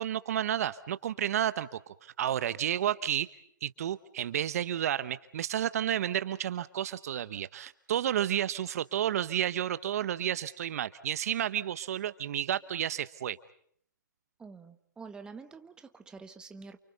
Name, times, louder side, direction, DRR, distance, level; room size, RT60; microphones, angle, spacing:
voice 1, 0.0-3.3 3.6-13.4, right 10 dB, 50° right, 1.0 m, -31 dB
voice 2, 14.4-16.8, right 4 dB, 10° right, 1.2 m, -47 dB
29.5 x 28.0 x 5.4 m
hypercardioid pair, 140°, 10 cm